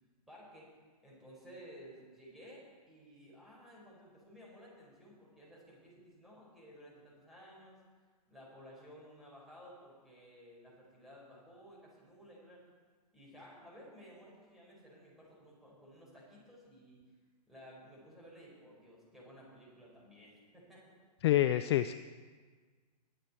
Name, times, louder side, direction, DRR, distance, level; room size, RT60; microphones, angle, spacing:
voice 1, 0.3-0.7 1.0-7.8 8.3-12.6 13.1-17.0 17.5-20.8, equal, ahead, -6 dB, 5.1 m, -55 dB
voice 2, 21.2-22.0, left 13 dB, 40° left, 12 dB, 0.4 m, -27 dB
21.5 x 8.0 x 4.5 m, 1.5 s
figure-of-eight pair, 120°, 21 cm